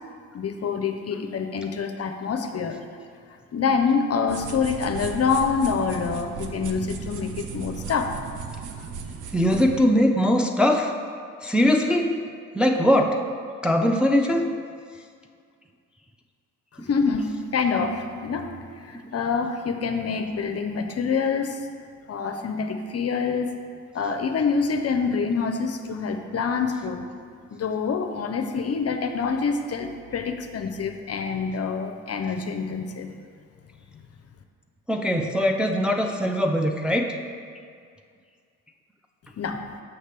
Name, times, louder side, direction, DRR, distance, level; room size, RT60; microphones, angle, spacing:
voice 1, 0.3-2.8 3.5-8.4 8.8-8.9 16.8-18.5 18.8-21.6 22.1-23.5 23.9-27.1 27.5-33.1 39.4-39.6, left 5 dB, 40° left, 6 dB, 0.6 m, -26 dB
sound 1, 4.3-9.8, right 6 dB, 55° right, 0.7 m, -36 dB
voice 2, 9.3-10.9 11.4-12.1 12.5-13.2 13.6-14.4 34.9-37.1, equal, 5° right, 2 dB, 0.5 m, -21 dB
6.5 x 5.8 x 3.3 m, 2.2 s
hypercardioid pair, 50°, 37 cm